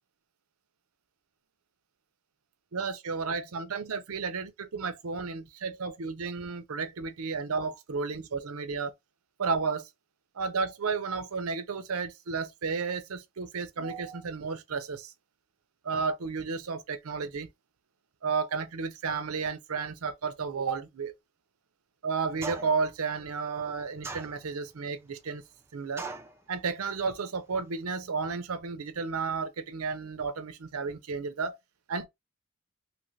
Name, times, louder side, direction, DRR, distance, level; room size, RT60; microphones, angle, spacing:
voice 1, 2.7-8.9 9.4-9.9 10.3-15.1 15.8-17.5 18.2-21.1 22.0-25.4 25.7-26.1 26.5-31.6 31.9-32.1, right 5 dB, 90° right, 0.6 m, -32 dB
sound 1, 22.4-22.9 24.0-24.7 26.0-26.4, right 3 dB, 10° right, 0.4 m, -39 dB
2.9 x 2.5 x 3.1 m
head